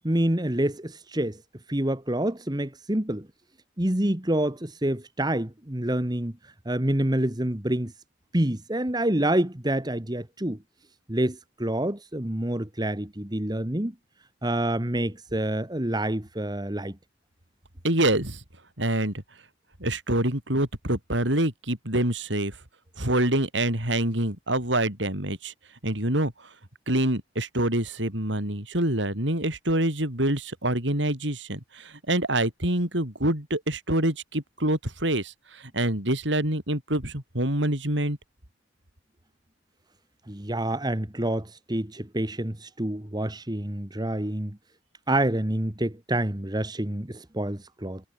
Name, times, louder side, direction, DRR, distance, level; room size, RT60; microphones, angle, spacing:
voice 1, 0.0-1.4 1.7-3.3 3.8-6.3 6.6-7.9 8.3-10.6 11.1-13.9 14.4-16.9 40.3-44.6 45.1-48.0, right 1 dB, 20° right, 1.7 m, -27 dB
voice 2, 17.8-18.4 18.8-19.1 19.8-22.5 23.0-25.5 25.8-26.3 26.9-38.2, right 1 dB, 65° right, 5.8 m, -26 dB
head